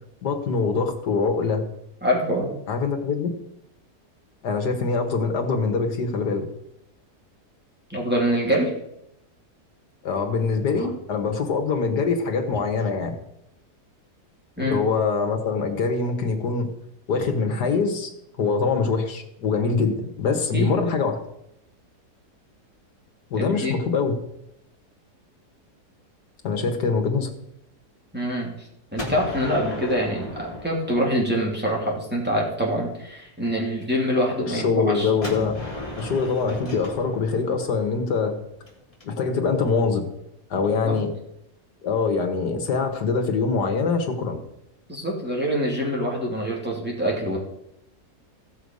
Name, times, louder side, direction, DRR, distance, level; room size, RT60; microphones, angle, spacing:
voice 1, 0.2-1.6 2.7-3.3 4.4-6.4 10.0-13.2 14.6-16.7 17.1-18.1 18.4-21.1 23.3-24.1 26.4-27.3 34.4-35.6 36.0-38.4 39.0-40.0 40.5-41.1 41.8-44.4, left 4 dB, 75° left, 5 dB, 2.1 m, -24 dB
voice 2, 2.0-2.5 7.9-8.7 10.8-10.9 14.6-14.8 20.5-20.8 23.3-23.8 28.1-28.5 28.9-35.1 40.8-41.0 44.9-47.4, equal, 5° right, -3 dB, 3.0 m, -25 dB
Gunshot gunfire, 29.0-31.8 35.2-39.0, left 2 dB, 20° left, 2.6 m, -36 dB
15.5 x 6.4 x 5.4 m, 0.81 s
omnidirectional pair, 1.8 m